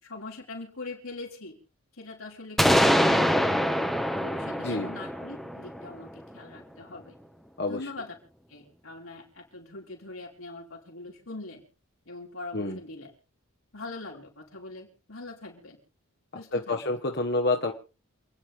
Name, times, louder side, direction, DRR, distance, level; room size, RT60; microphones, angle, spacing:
voice 1, 0.0-1.6 1.9-3.5 4.1-7.1 7.7-8.1 8.5-11.6 12.1-13.1 13.7-15.8 16.3-16.8, left 2 dB, 75° left, -1 dB, 4.7 m, -42 dB
sound 1, 2.6-6.4, equal, ahead, 1.3 m, -24 dB
voice 2, 16.5-17.7, left 2 dB, 50° left, 3 dB, 1.4 m, -28 dB
28.5 x 9.8 x 3.6 m, 0.34 s
head